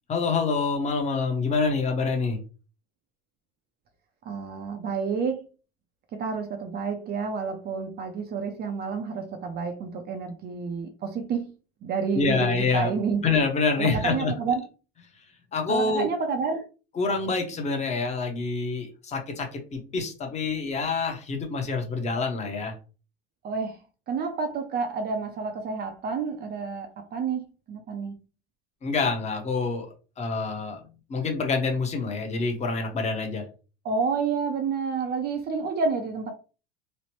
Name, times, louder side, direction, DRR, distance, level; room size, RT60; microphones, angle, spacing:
voice 1, 0.1-2.4 12.1-12.9 13.2-14.3 15.5-16.1 17.0-22.7 28.8-30.8 31.1-33.4, left 4 dB, 20° left, 0.7 m, -26 dB
voice 2, 4.2-5.5 6.1-11.5 11.8-13.2 13.8-14.6 15.7-16.6 23.4-23.8 24.1-28.1 33.8-36.3, right 5 dB, 35° right, 0.4 m, -29 dB
3.1 x 2.0 x 2.9 m
supercardioid pair, 125°, 30 cm